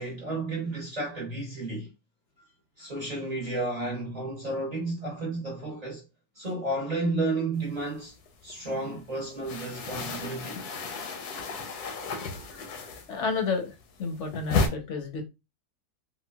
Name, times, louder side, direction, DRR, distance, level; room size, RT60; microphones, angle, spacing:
voice 1, 0.0-1.9 2.8-6.0 6.3-8.2 8.4-10.6, right 2 dB, 35° right, 0.7 m, -32 dB
sound 1, 7.7-8.7 8.9-13.4 13.7-14.7, left 4 dB, 80° left, 1.2 m, -33 dB
voice 2, 12.1-13.7 14.0-15.2, left 4 dB, 60° left, 0.9 m, -32 dB
3.7 x 2.2 x 2.2 m
omnidirectional pair, 1.7 m